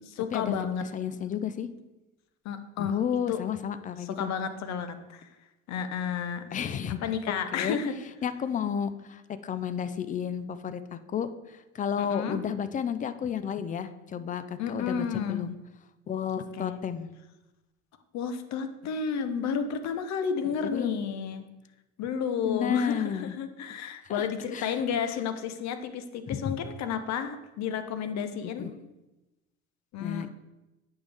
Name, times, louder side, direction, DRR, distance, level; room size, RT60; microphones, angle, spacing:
voice 1, 0.2-0.9 2.4-3.0 3.3-3.4 4.0-5.3 5.7-7.9 12.0-12.4 14.6-15.4 16.5-16.8 18.1-21.4 22.0-28.7 29.9-30.3, left 7 dB, 40° left, 9 dB, 0.8 m, -32 dB
voice 2, 0.8-1.7 2.8-4.3 6.5-7.0 7.3-7.8 8.2-15.6 16.1-17.1 20.4-21.0 22.4-23.3 24.1-24.2 24.5-24.7 26.3-26.6 28.4-28.9 30.0-30.3, left 8 dB, 20° left, 12 dB, 0.4 m, -32 dB
8.6 x 5.5 x 3.4 m, 1.0 s
figure-of-eight pair, 60°, 41 cm